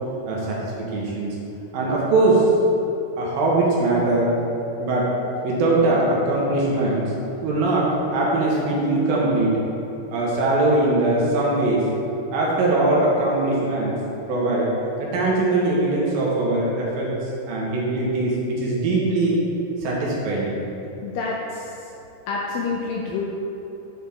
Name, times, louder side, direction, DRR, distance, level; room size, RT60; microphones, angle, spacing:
voice 1, 0.3-1.4 1.7-2.5 3.2-4.3 4.8-5.1 5.4-7.1 7.4-9.6 10.1-11.8 12.3-13.9 14.3-14.7 15.0-17.1 17.5-19.4 19.8-20.6, right 2 dB, 70° right, -4 dB, 2.7 m, -21 dB
voice 2, 21.0-21.9 22.3-23.2, left 4 dB, 80° left, -3 dB, 2.1 m, -28 dB
7.6 x 6.5 x 3.5 m, 2.9 s
omnidirectional pair, 4.6 m